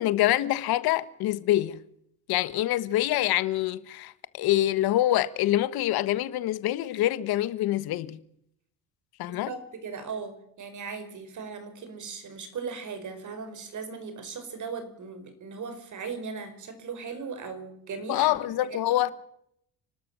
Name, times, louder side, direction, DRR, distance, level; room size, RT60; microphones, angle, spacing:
voice 1, 0.0-1.8 2.3-8.2 9.2-9.5 18.1-19.1, left 14 dB, 80° left, 1.4 m, -25 dB
voice 2, 9.3-18.6 18.8-18.9, right 5 dB, 55° right, 4.9 m, -38 dB
30.0 x 13.0 x 7.4 m
cardioid pair, 95°, 37 cm